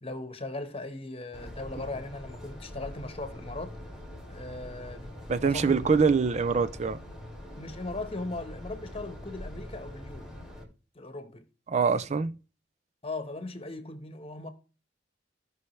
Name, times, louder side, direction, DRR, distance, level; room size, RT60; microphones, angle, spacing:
voice 1, 0.0-3.8 4.3-5.9 7.6-10.3 10.9-11.4 13.0-14.5, left 2 dB, 30° left, 1.2 m, -38 dB
sound 1, 1.3-10.6, left 1 dB, ahead, 2.3 m, -43 dB
voice 2, 5.3-7.0 11.7-12.4, right 5 dB, 40° right, 0.4 m, -24 dB
16.0 x 5.5 x 3.2 m
head